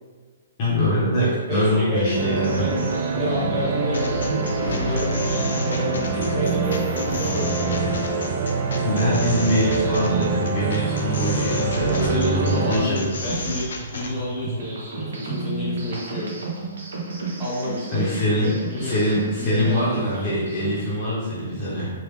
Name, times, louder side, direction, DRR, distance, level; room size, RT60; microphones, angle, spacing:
voice 1, 0.6-2.7 8.8-13.0 17.9-21.9, equal, 25° left, -7 dB, 0.6 m, -23 dB
voice 2, 1.2-2.8 3.1-5.1 5.6-8.1 11.9-16.3 17.4-19.9, left 1 dB, 10° right, -10 dB, 0.9 m, -30 dB
sound 1, 2.1-12.8, right 4 dB, 40° right, 0.4 m, -25 dB
sound 2, 2.1-20.9, right 3 dB, 85° right, 0.8 m, -34 dB
sound 3, 3.9-14.1, left 2 dB, 65° left, 0.5 m, -31 dB
3.2 x 2.3 x 3.3 m, 1.4 s
hypercardioid pair, 175°, 0 cm